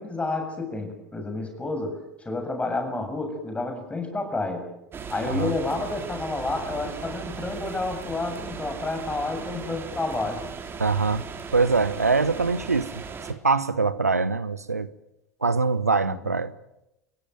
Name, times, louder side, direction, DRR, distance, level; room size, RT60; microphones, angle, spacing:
voice 1, 0.0-4.7 5.1-10.4 16.1-16.2, left 2 dB, 15° left, 7.5 m, -30 dB
sound 1, 4.9-13.3, right 5 dB, 30° right, 3.2 m, -37 dB
voice 2, 10.8-11.2 11.5-13.0 13.3-14.9 15.4-16.5, right 4 dB, 85° right, 1.0 m, -23 dB
30.0 x 16.5 x 9.1 m
figure-of-eight pair, 70°, 8 cm